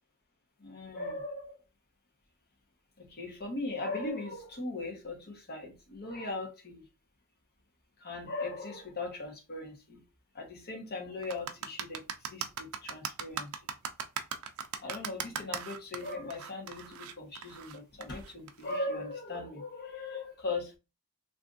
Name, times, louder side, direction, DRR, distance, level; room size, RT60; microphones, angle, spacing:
voice 1, 0.6-1.6 3.0-6.8 8.0-10.0 10.3-13.5 14.8-20.7, left 2 dB, 45° left, 1.0 m, -39 dB
sound 1, 11.2-18.8, right 7 dB, 70° right, 0.5 m, -38 dB
2.6 x 2.5 x 3.5 m
head